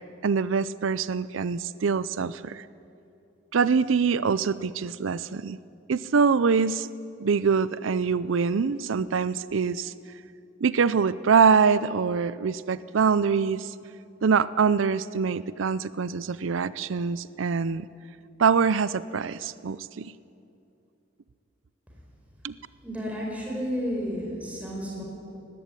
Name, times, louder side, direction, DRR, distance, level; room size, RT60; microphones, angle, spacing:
voice 1, 0.0-2.7 3.5-5.6 5.9-6.9 7.2-9.9 10.6-13.7 14.2-17.9 18.4-20.1 22.4-22.6, right 5 dB, 85° right, 17 dB, 0.5 m, -24 dB
voice 2, 22.8-25.0, equal, 5° right, -3 dB, 4.7 m, -31 dB
19.0 x 15.5 x 9.8 m, 2.6 s
head